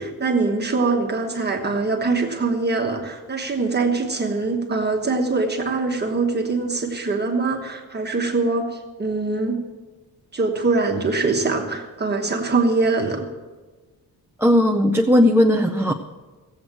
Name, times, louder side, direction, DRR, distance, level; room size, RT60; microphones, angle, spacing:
voice 1, 0.0-9.6 10.3-13.3, right 3 dB, 25° right, 1 dB, 1.2 m, -23 dB
voice 2, 14.4-15.9, left 1 dB, 5° right, 3 dB, 0.4 m, -17 dB
16.5 x 7.8 x 7.4 m, 1.3 s
wide cardioid pair, 180°, 37 cm